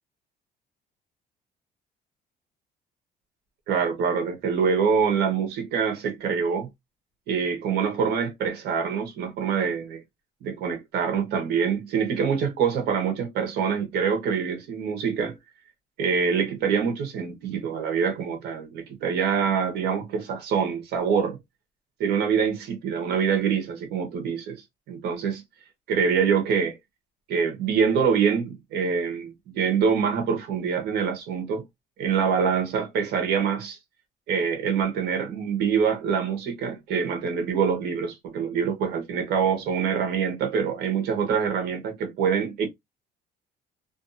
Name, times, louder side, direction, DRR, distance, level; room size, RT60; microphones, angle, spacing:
voice 1, 3.7-6.7 7.3-10.0 10.4-15.4 16.0-21.4 22.0-24.6 24.9-25.4 25.9-26.8 27.3-31.6 32.0-33.8 34.3-42.7, right 6 dB, 75° right, 0.9 m, -25 dB
2.5 x 2.3 x 2.5 m
cardioid pair, 110°, 17 cm